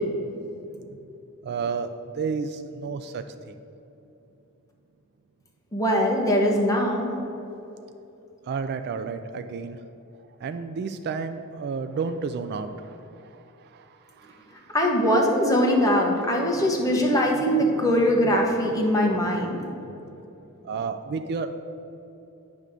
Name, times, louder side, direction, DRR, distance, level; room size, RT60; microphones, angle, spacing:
voice 1, 0.1-0.5 0.7-1.1 1.4-3.6 8.5-9.8 10.4-14.7 16.6-19.6 19.9-20.2 20.6-21.5, right 5 dB, 50° right, 7 dB, 0.3 m, -33 dB
voice 2, 5.7-7.1 14.7-19.6, equal, 15° left, -1 dB, 1.0 m, -22 dB
9.1 x 3.6 x 6.6 m, 2.9 s
head